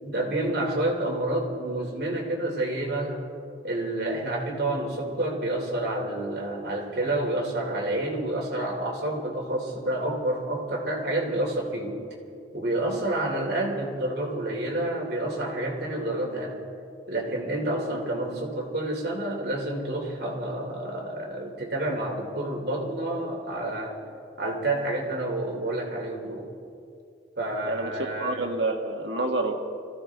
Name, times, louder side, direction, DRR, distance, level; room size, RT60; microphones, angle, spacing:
voice 1, 0.0-3.2 3.6-12.0 12.5-16.6 17.1-24.0 24.4-26.5 27.4-28.5, right 1 dB, 60° right, -1 dB, 2.9 m, -29 dB
voice 2, 28.2-29.6, right 2 dB, 90° right, 3 dB, 1.6 m, -27 dB
25.0 x 15.0 x 3.5 m, 2.4 s
head